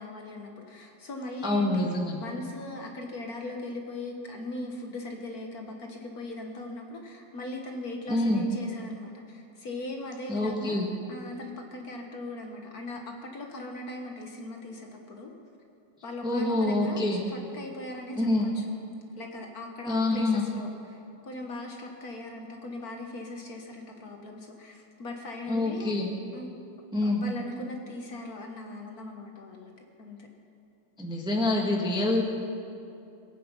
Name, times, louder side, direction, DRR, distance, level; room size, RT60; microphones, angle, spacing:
voice 1, 0.0-1.9 2.1-15.3 16.0-18.6 19.2-25.9 26.3-26.5 27.0-29.7 30.0-30.3, left 2 dB, 50° left, 2 dB, 1.6 m, -39 dB
voice 2, 1.4-2.2 8.1-8.4 10.3-10.9 16.2-17.2 18.2-18.5 19.9-20.4 25.5-26.1 26.9-27.2 31.0-32.2, left 2 dB, 5° right, -1 dB, 1.2 m, -26 dB
22.0 x 9.1 x 5.6 m, 2.6 s
omnidirectional pair, 2.1 m